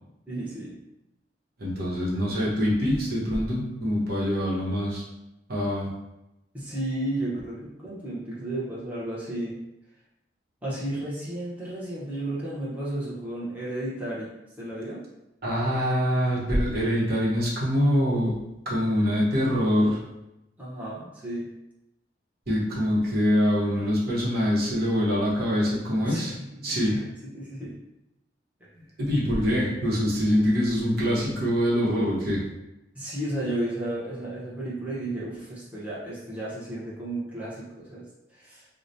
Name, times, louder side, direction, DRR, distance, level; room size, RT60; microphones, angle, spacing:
voice 1, 0.3-0.8 6.5-9.6 10.6-14.3 14.6-15.0 20.6-21.5 26.0-27.0 27.3-27.8 32.9-38.0 38.3-38.7, right 1 dB, 10° right, -8 dB, 0.8 m, -33 dB
voice 2, 1.6-5.0 5.5-5.9 15.4-18.3 18.6-20.0 22.5-26.3 26.6-27.0 29.0-32.4, equal, 55° right, -6 dB, 1.0 m, -24 dB
4.7 x 2.1 x 2.6 m, 0.93 s
head